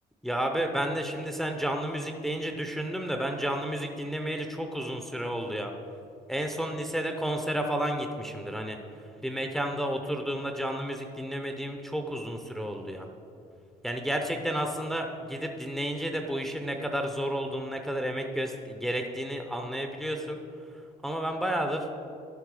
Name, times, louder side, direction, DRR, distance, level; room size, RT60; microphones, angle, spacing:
voice 1, 0.2-5.7 6.3-8.8 9.2-13.1 13.8-20.4 21.0-21.9, equal, ahead, 4 dB, 0.7 m, -31 dB
12.0 x 5.4 x 4.8 m, 2.4 s
cardioid pair, 110°, 17 cm